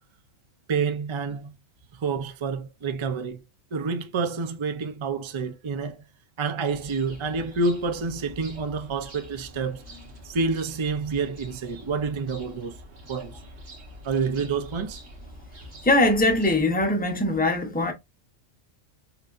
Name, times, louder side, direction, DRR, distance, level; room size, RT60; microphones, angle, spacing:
voice 1, 0.7-1.5 1.9-3.4 3.7-6.0 6.4-9.8 10.2-12.8 13.1-13.4 14.0-15.0, right 4 dB, 35° right, 0.4 m, -28 dB
sound 1, 6.7-16.6, equal, 55° right, 1.6 m, -45 dB
voice 2, 15.8-17.9, left 2 dB, 10° left, 0.7 m, -21 dB
5.8 x 2.7 x 2.5 m
omnidirectional pair, 1.4 m